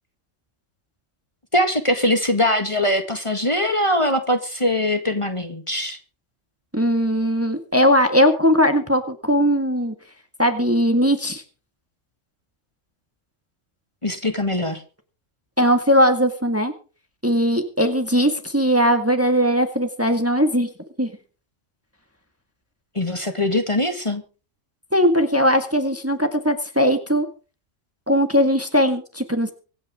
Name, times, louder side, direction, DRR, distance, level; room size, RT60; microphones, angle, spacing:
voice 1, 1.5-6.0 14.0-14.8 23.0-24.2, left 1 dB, 25° left, 7 dB, 1.9 m, -22 dB
voice 2, 6.7-9.9 10.4-11.4 15.6-16.7 17.2-20.7 21.0-21.1 24.9-27.3 28.1-29.5, equal, 10° right, 7 dB, 1.8 m, -19 dB
25.0 x 9.5 x 3.6 m, 0.36 s
omnidirectional pair, 1.3 m